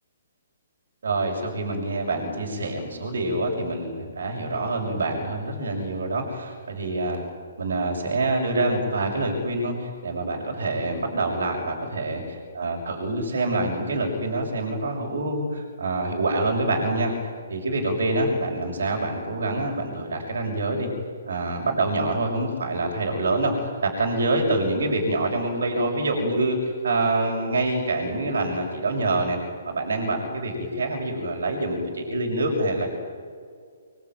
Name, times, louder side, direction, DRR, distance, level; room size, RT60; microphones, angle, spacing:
voice 1, 1.0-7.2 7.6-12.2 12.5-17.1 17.5-20.9 21.3-29.4 29.6-32.9, right 2 dB, 65° right, 1 dB, 6.5 m, -26 dB
27.5 x 21.5 x 9.4 m, 2.1 s
figure-of-eight pair, 130°, 0 cm